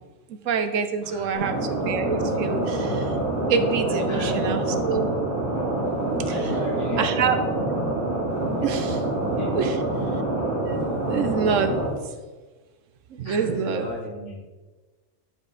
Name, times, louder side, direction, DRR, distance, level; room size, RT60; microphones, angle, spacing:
voice 1, 0.3-3.1 3.5-5.1 7.0-7.4 8.6-9.0 9.5-9.8 10.7-11.8 13.1-13.9, right 6 dB, 75° right, 8 dB, 1.0 m, -26 dB
sound 1, 1.3-11.9, right 2 dB, 45° right, 2.6 m, -26 dB
voice 2, 4.1-4.9 6.2-7.4 9.4-9.8 13.2-14.4, equal, 65° left, -6 dB, 3.0 m, -34 dB
10.5 x 5.1 x 4.1 m, 1.3 s
omnidirectional pair, 1.4 m